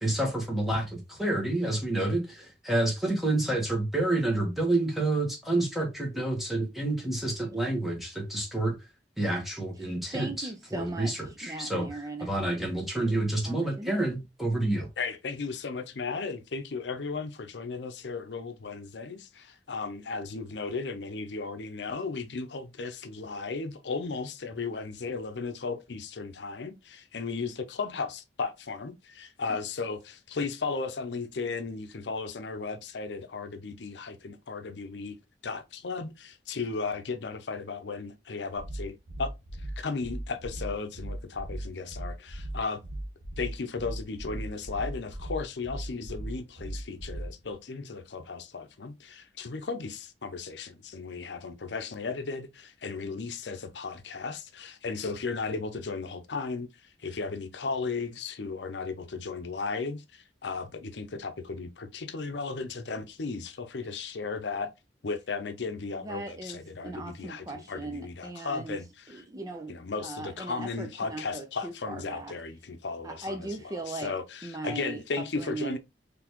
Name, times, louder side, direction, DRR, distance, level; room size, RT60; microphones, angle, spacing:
voice 1, 0.0-8.8 9.2-14.9, right 2 dB, ahead, 1.3 m, -29 dB
voice 2, 9.8-11.1 11.4-13.2 13.4-14.0 29.5-29.6 66.0-68.8 69.1-69.7 70.0-72.3 73.0-74.1 74.4-75.8, right 2 dB, 20° right, 0.5 m, -39 dB
voice 3, 15.0-35.2 35.4-39.3 39.6-42.8 43.4-64.7 65.0-69.2 69.7-73.5 73.9-75.8, left 4 dB, 80° left, 0.7 m, -35 dB
sound 1, 38.6-47.5, right 1 dB, 45° right, 1.0 m, -37 dB
4.0 x 3.3 x 3.0 m
head